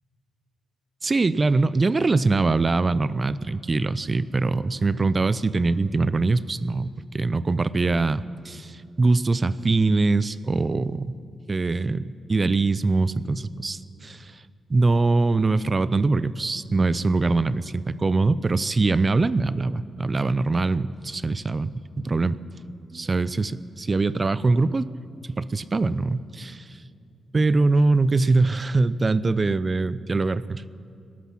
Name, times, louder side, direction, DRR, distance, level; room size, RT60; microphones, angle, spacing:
voice 1, 1.0-11.2 11.5-14.3 14.7-22.4 22.9-24.9 25.3-26.6 27.3-30.7, right 3 dB, 30° right, 16 dB, 0.5 m, -23 dB
20.0 x 12.5 x 5.9 m, 2.5 s
cardioid pair, 90°, 0 cm